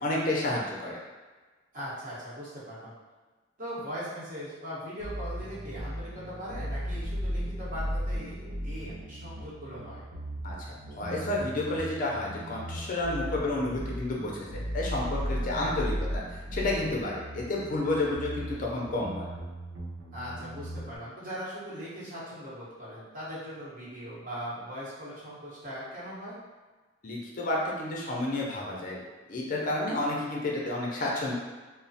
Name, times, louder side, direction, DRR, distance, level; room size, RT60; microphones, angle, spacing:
voice 1, 0.0-1.0 10.4-16.2 16.5-19.3 27.0-29.0 29.3-31.3, left 2 dB, 45° left, -3 dB, 0.5 m, -31 dB
voice 2, 1.7-2.9 3.6-10.1 15.5-15.7 20.1-26.4, equal, 45° right, -9 dB, 1.0 m, -40 dB
sound 1, 5.0-21.0, equal, 85° right, 0.5 m, -36 dB
3.0 x 2.0 x 2.7 m, 1.3 s
head